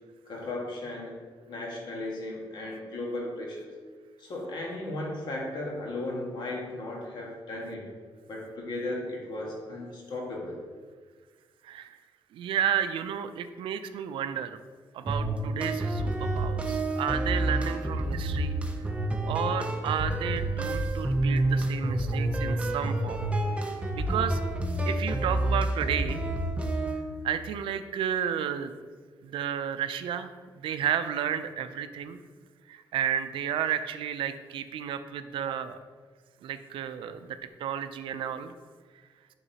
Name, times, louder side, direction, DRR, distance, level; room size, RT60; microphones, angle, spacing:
voice 1, 0.3-3.7 4.2-7.9 8.3-10.6, left 2 dB, 60° left, -2 dB, 1.4 m, -36 dB
voice 2, 11.6-12.0 12.3-14.6 14.9-18.6 19.3-23.3 23.9-24.4 24.9-26.2 27.2-28.7 29.2-32.2 32.7-35.8 36.4-38.5, right 9 dB, 90° right, 10 dB, 0.4 m, -32 dB
sound 1, 15.1-27.0, right 1 dB, 15° right, 0.5 m, -28 dB
8.8 x 3.8 x 2.8 m, 1.5 s
cardioid pair, 140°, 9 cm